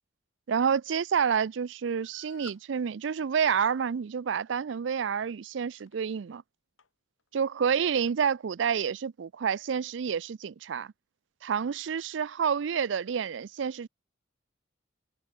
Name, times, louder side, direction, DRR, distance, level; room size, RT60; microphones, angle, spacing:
voice 1, 0.5-6.4 7.3-10.9 11.4-13.9, right 7 dB, 65° right, 0.4 m, -29 dB
sound 1, 2.0-2.7 3.3-3.7 4.7-4.9 5.6-5.9 6.8-6.9 7.2-7.3 8.1-8.2, left 6 dB, 85° left, 1.9 m, -54 dB
head